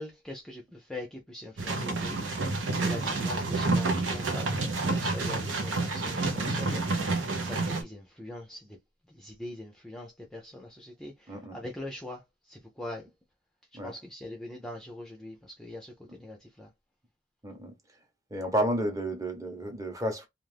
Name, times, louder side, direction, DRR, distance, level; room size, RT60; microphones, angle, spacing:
voice 1, 0.0-2.3 2.7-7.0 7.4-8.8 9.1-13.1 13.8-16.7, left 1 dB, 5° left, 0.5 m, -42 dB
sound 1, 1.6-7.8, right 3 dB, 85° right, 0.8 m, -29 dB
voice 2, 17.4-17.7 18.3-20.3, right 1 dB, 15° right, 0.8 m, -31 dB
2.5 x 2.4 x 3.3 m
head